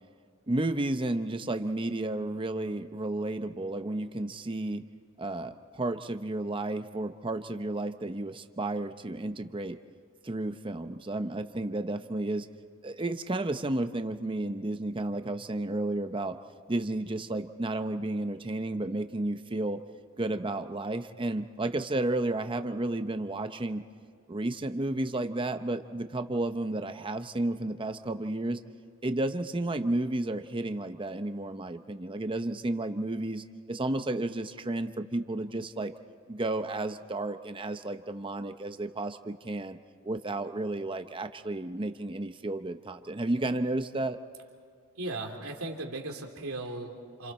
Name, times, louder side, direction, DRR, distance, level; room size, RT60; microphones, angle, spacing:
voice 1, 0.5-4.8 5.2-9.8 10.2-12.5 12.8-16.4 16.7-19.8 20.2-23.8 24.3-28.6 29.0-35.9 36.3-39.8 40.0-44.2, right 2 dB, 25° right, 8 dB, 0.7 m, -32 dB
voice 2, 44.9-47.3, right 2 dB, 75° right, 2 dB, 2.9 m, -37 dB
29.5 x 28.0 x 4.3 m, 2.1 s
head